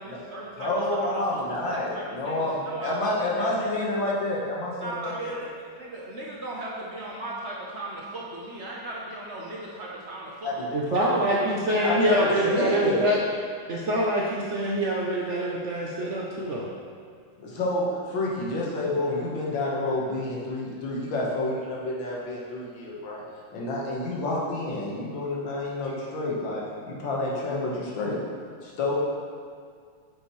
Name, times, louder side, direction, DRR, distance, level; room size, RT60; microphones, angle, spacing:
voice 1, 0.0-3.5 4.8-10.5, right 2 dB, 50° right, -5 dB, 0.8 m, -37 dB
voice 2, 0.6-5.3 10.4-11.4 11.8-13.1 17.4-23.2 23.5-28.2 28.6-28.9, left 2 dB, 70° left, -4 dB, 2.0 m, -29 dB
voice 3, 10.7-13.2 13.7-16.7, right 1 dB, 80° right, -4 dB, 0.6 m, -25 dB
7.8 x 6.6 x 3.1 m, 2.1 s
omnidirectional pair, 2.1 m